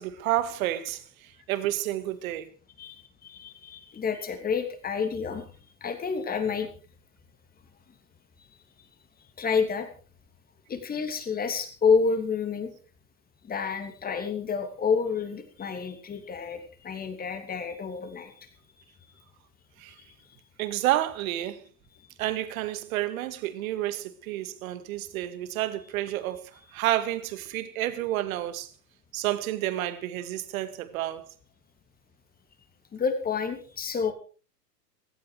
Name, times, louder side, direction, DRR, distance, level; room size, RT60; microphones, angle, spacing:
voice 1, 0.0-2.5 19.8-19.9 20.6-21.6 22.2-28.7 29.1-31.3, right 14 dB, 55° right, 2.1 m, -30 dB
voice 2, 2.8-5.5 5.8-6.7 9.4-9.9 10.7-12.7 13.4-18.5 20.0-20.1 32.9-34.1, left 5 dB, 20° left, 3.0 m, -29 dB
17.0 x 14.0 x 4.8 m
hypercardioid pair, 120°, 49 cm